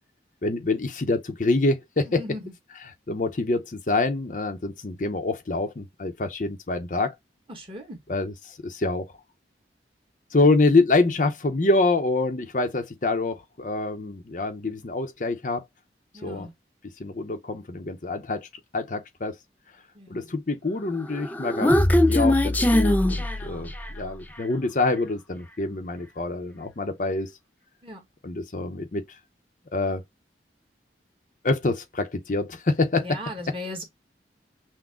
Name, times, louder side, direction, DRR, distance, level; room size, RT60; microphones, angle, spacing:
voice 1, 0.4-2.2 2.8-7.1 8.1-9.1 10.3-15.6 16.2-16.5 17.0-18.5 18.7-19.3 20.1-23.7 23.9-27.3 28.2-29.0 29.7-30.0 31.4-33.2, left 3 dB, 45° left, 0.7 m, -26 dB
voice 2, 2.1-2.5 7.5-8.0 16.1-16.5 19.9-20.3 27.8-28.0 32.9-33.8, left 1 dB, 30° right, 1.5 m, -37 dB
Human voice, 21.0-24.1, left 1 dB, 10° left, 0.3 m, -21 dB
6.1 x 2.1 x 3.6 m
head